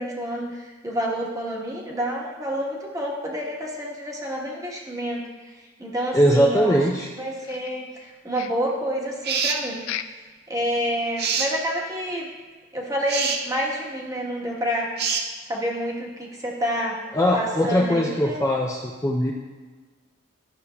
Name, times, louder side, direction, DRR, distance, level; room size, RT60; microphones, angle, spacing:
voice 1, 0.0-6.8 7.1-10.1 10.5-12.3 12.7-15.1 15.5-17.0 17.3-18.4, equal, 15° right, -3 dB, 1.1 m, -29 dB
voice 2, 6.1-7.1 17.1-19.3, equal, 15° left, -2 dB, 0.4 m, -21 dB
sound 1, 7.4-8.1 8.3-8.8 9.8-10.3 10.7-10.8 11.2-11.3 11.8-11.9, left 10 dB, 85° left, 0.3 m, -36 dB
sound 2, 9.2-9.6 11.2-11.5 13.1-13.4 15.0-15.3, right 5 dB, 50° right, 0.6 m, -25 dB
11.5 x 6.8 x 2.2 m, 1.4 s
head